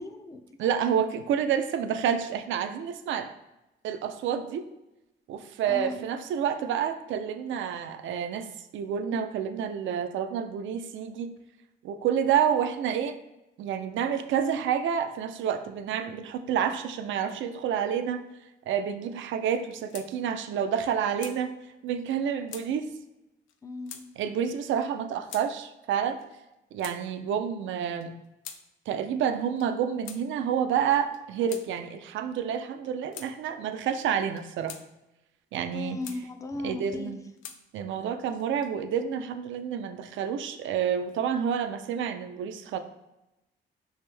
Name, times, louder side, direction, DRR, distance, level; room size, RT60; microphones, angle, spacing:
voice 1, 0.0-0.7 5.7-6.0 23.6-24.0 35.7-37.1, left 3 dB, 15° left, 8 dB, 0.3 m, -37 dB
voice 2, 0.6-3.3 3.8-4.6 5.3-8.5 8.7-11.3 11.8-13.2 13.6-18.2 18.7-21.5 21.8-22.9 24.2-26.2 26.7-28.1 28.9-34.7 35.5-36.0 36.6-37.2 37.7-42.8, right 8 dB, 75° right, 8 dB, 0.4 m, -29 dB
sound 1, 19.5-20.1 20.4-20.5 20.8-21.4 22.1-22.2 22.5-22.7 23.5-23.6 23.9-24.1 24.8-24.9 25.3-25.5 26.2-27.0 27.8-28.6 29.4-29.7 30.1-30.2 31.0-31.7 32.5-32.7 33.1-33.3 34.2-34.8 35.5-36.2 36.9-37.6 38.4-38.9, left 8 dB, 80° left, 0.4 m, -44 dB
3.5 x 2.5 x 3.3 m, 0.95 s
cardioid pair, 90°, 20 cm